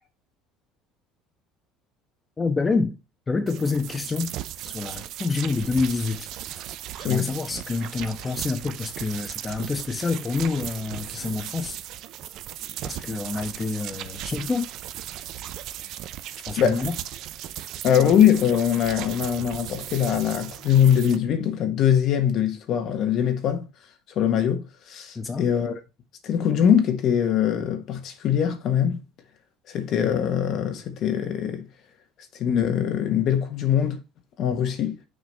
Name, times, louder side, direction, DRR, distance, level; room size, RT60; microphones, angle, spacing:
voice 1, 2.4-2.9 3.3-4.3 4.6-6.3 7.0-11.8 12.8-14.7 16.5-16.9 25.1-25.5, left 4 dB, 20° left, 1.1 m, -27 dB
sound 1, 3.5-21.2, right 12 dB, 60° right, 0.6 m, -37 dB
voice 2, 17.8-23.6 24.1-25.7 26.2-29.0 29.7-31.7 32.3-34.0 34.4-35.0, left 9 dB, 55° left, 1.4 m, -22 dB
6.4 x 4.0 x 5.4 m
cardioid pair, 115°, 0 cm